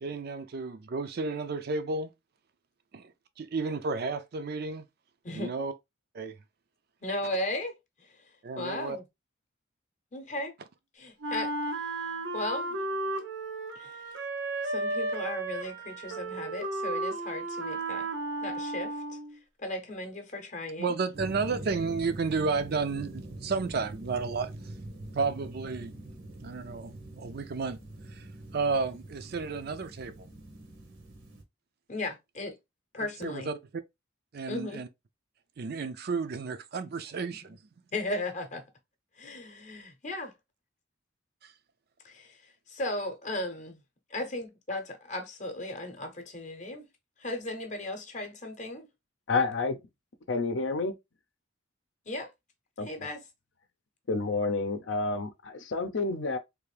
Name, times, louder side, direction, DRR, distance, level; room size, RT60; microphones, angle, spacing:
voice 1, 0.0-2.1 2.9-3.0 3.4-4.8 5.3-5.7 6.1-6.3 8.4-9.0 20.8-24.5 25.1-25.9 26.4-27.8 28.1-28.3 28.5-30.1 33.2-33.5 34.3-34.9 35.6-37.6 41.4-41.5, right 4 dB, 55° right, 0.4 m, -32 dB
voice 2, 7.0-9.0 10.1-10.6 10.9-12.1 12.3-12.8 13.7-14.2 14.6-18.1 18.4-19.0 19.6-21.0 31.9-32.6 32.9-33.5 34.5-34.8 37.9-38.6 39.1-40.3 42.0-43.8 44.1-46.9 47.2-48.9 52.1-52.3 52.8-53.2, left 1 dB, 40° left, 0.8 m, -36 dB
Wind instrument woodwind instrument, 11.2-19.4, right 2 dB, 75° right, 0.9 m, -34 dB
sound 1, 21.1-31.4, right 1 dB, 90° right, 1.3 m, -44 dB
voice 3, 49.3-49.8 50.3-51.0 52.8-52.9 54.1-56.4, left 3 dB, 70° left, 0.6 m, -29 dB
3.3 x 2.5 x 3.2 m
head